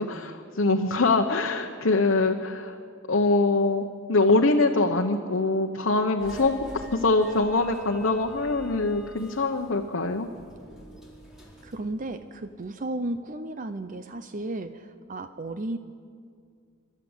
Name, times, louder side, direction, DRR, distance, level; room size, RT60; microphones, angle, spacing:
voice 1, 0.0-2.8 3.1-10.3, left 3 dB, 65° left, 1 dB, 1.0 m, -24 dB
sound 1, 6.2-12.7, right 1 dB, 5° right, 4.2 m, -47 dB
voice 2, 11.6-15.8, right 2 dB, 40° right, 10 dB, 0.6 m, -34 dB
25.5 x 13.0 x 8.1 m, 2.2 s
head